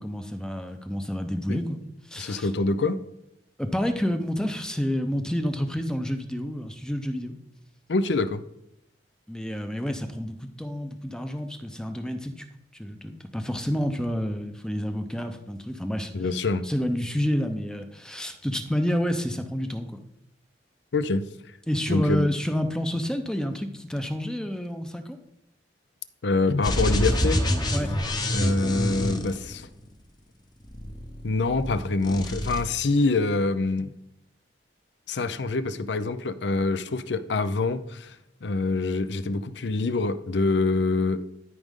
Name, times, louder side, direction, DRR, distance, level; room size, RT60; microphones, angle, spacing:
voice 1, 0.0-1.8 2.0-2.5 3.6-7.3 9.3-12.5 12.7-16.1 16.6-20.0 21.7-25.2 27.7-27.9, equal, 5° left, 7 dB, 0.7 m, -29 dB
voice 2, 2.2-3.0 7.9-8.4 16.1-16.6 20.9-21.2 21.9-22.3 26.2-27.4 28.3-29.7 31.2-33.9 35.1-38.2 38.4-41.3, left 3 dB, 70° left, 13 dB, 0.6 m, -25 dB
sound 1, 26.6-29.9 30.6-31.7 32.0-32.6, left 1 dB, 25° left, 1.0 m, -26 dB
12.5 x 5.2 x 3.7 m, 0.79 s
head